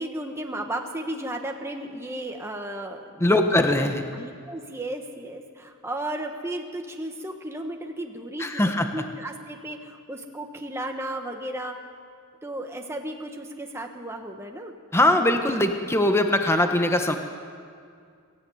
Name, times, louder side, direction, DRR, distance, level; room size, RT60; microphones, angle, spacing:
voice 1, 0.0-3.4 4.1-11.8 12.4-14.7, right 1 dB, 10° right, 3 dB, 1.3 m, -34 dB
voice 2, 3.2-4.0 8.4-8.9 14.9-17.2, left 1 dB, 10° left, 5 dB, 1.3 m, -21 dB
23.5 x 14.0 x 9.4 m, 2.3 s
head